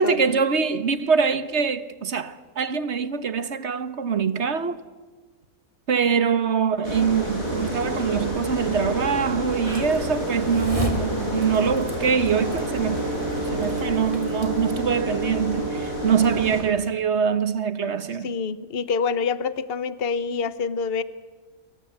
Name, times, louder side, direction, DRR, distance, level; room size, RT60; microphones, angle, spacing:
voice 1, 0.0-4.8 5.9-13.0 13.5-18.3, right 6 dB, 50° right, 1.3 m, -24 dB
sound 1, 6.8-16.6, equal, 70° left, 7.7 m, -29 dB
sound 2, 9.6-14.8, equal, 20° right, 3.0 m, -35 dB
Brass instrument, 12.3-16.4, right 3 dB, 85° right, 3.6 m, -32 dB
voice 2, 18.2-21.0, left 5 dB, 45° left, 1.2 m, -26 dB
27.0 x 23.5 x 8.0 m
omnidirectional pair, 1.5 m